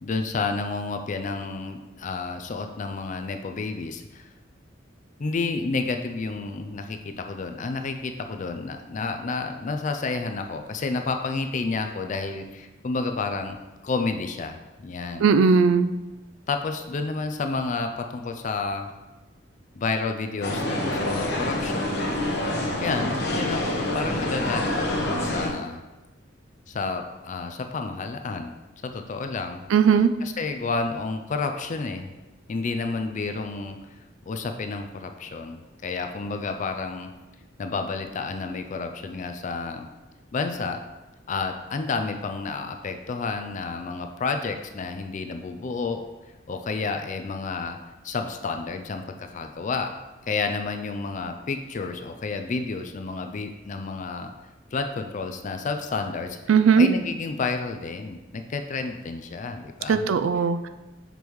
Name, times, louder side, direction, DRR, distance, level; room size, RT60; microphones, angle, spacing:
voice 1, 0.0-4.3 5.2-13.6 13.8-15.3 16.5-18.9 19.7-22.0 22.8-23.6 23.9-25.8 26.7-28.5 28.8-29.6 30.2-32.1 32.5-33.8 34.3-37.1 37.6-39.9 40.3-40.8 41.3-46.1 46.5-47.8 48.0-49.9 50.3-54.3 54.7-56.4 56.8-60.0, left 4 dB, 40° left, 6 dB, 0.4 m, -30 dB
voice 2, 15.2-15.9 29.7-30.1 56.5-56.9 59.9-60.7, right 6 dB, 85° right, 10 dB, 0.4 m, -18 dB
sound 1, 20.4-25.5, left 1 dB, 55° left, 1.0 m, -27 dB
6.1 x 5.2 x 3.1 m, 1.1 s
head